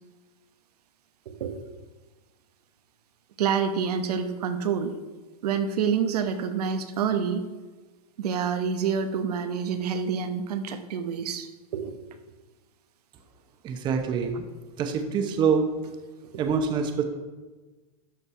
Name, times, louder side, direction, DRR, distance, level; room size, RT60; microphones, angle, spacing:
voice 1, 1.3-1.6 3.4-4.9 5.4-7.5 8.2-12.0 16.3-16.4, right 6 dB, 85° right, 8 dB, 1.0 m, -27 dB
voice 2, 13.6-14.5 14.8-15.7 16.4-17.0, right 6 dB, 25° right, 6 dB, 0.8 m, -25 dB
12.5 x 4.6 x 5.6 m, 1.3 s
supercardioid pair, 155°, 19 cm